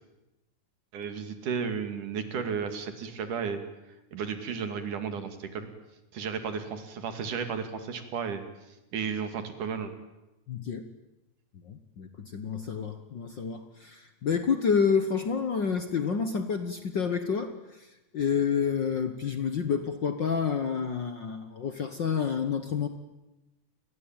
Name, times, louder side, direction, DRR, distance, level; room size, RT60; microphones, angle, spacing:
voice 1, 0.9-3.6 4.1-5.7 6.1-8.4 8.9-9.9, right 6 dB, 85° right, 8 dB, 3.9 m, -33 dB
voice 2, 10.5-10.8 11.6-22.9, left 6 dB, 50° left, 8 dB, 1.4 m, -29 dB
28.5 x 21.5 x 9.0 m, 0.98 s
omnidirectional pair, 3.5 m